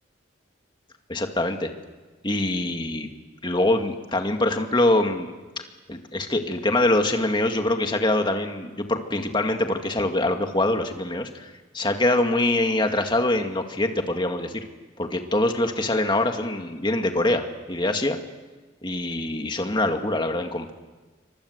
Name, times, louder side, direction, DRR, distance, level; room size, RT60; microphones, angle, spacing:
voice 1, 1.1-1.7 2.2-3.1 3.4-5.3 5.9-14.6 15.0-18.2 18.8-20.7, left 1 dB, 25° left, 5 dB, 2.1 m, -24 dB
28.0 x 24.5 x 8.1 m, 1.3 s
head